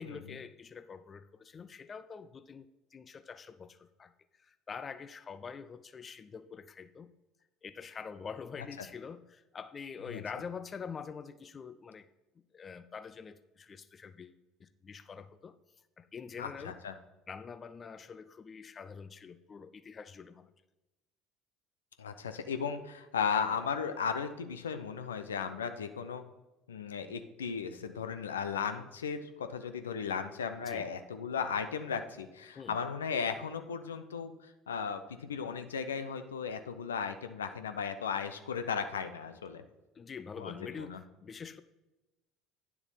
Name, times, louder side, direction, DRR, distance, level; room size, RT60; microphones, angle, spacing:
voice 1, 0.0-2.7 2.9-4.1 4.4-7.1 7.6-12.1 12.5-15.5 16.0-16.8 17.3-20.5 30.6-30.9 32.6-32.8 39.9-41.6, left 6 dB, 30° left, 13 dB, 0.5 m, -45 dB
voice 2, 16.4-16.9 22.0-26.2 26.7-34.3 34.7-39.6 40.4-41.0, left 6 dB, 75° left, 9 dB, 0.6 m, -36 dB
9.8 x 6.9 x 4.1 m, 1.0 s
figure-of-eight pair, 60°, 0 cm